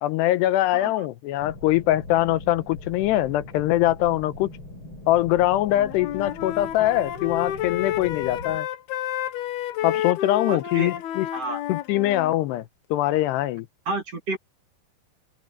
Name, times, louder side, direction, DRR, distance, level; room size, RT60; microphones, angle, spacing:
voice 1, 0.0-4.5 5.1-8.7 9.8-11.3 11.7-13.7, left 15 dB, 90° left, 2.9 m, -23 dB
sound 1, 1.4-8.6, left 2 dB, 30° left, 6.5 m, -41 dB
Wind instrument woodwind instrument, 5.6-12.4, left 11 dB, 70° left, 3.2 m, -31 dB
voice 2, 10.5-10.9 11.3-11.6 13.9-14.4, right 2 dB, 40° right, 2.9 m, -30 dB
open air
omnidirectional pair, 4.8 m